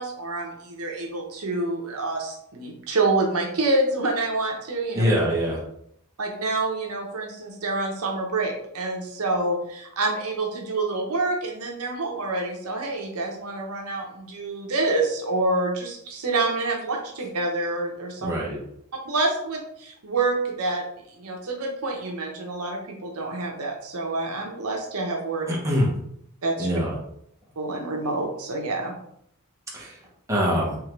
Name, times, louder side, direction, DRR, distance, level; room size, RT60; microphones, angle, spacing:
voice 1, 0.0-5.0 6.2-18.3 19.0-25.5 26.4-26.8 27.6-28.9, right 2 dB, 75° right, 1 dB, 0.8 m, -27 dB
voice 2, 4.9-5.6 18.2-18.6 25.5-25.9 26.6-26.9 29.7-30.0 30.3-30.8, equal, 15° right, -4 dB, 0.9 m, -23 dB
3.6 x 3.2 x 3.1 m, 0.73 s
head